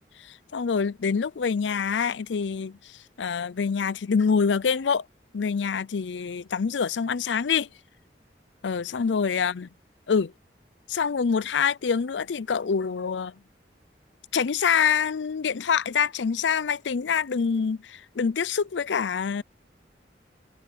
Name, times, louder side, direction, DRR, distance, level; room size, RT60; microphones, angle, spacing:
voice 1, 0.0-5.1 5.3-7.7 8.6-9.7 10.1-10.3 10.9-13.4 14.3-19.4, left 6 dB, 85° left, 0.5 m, -26 dB
head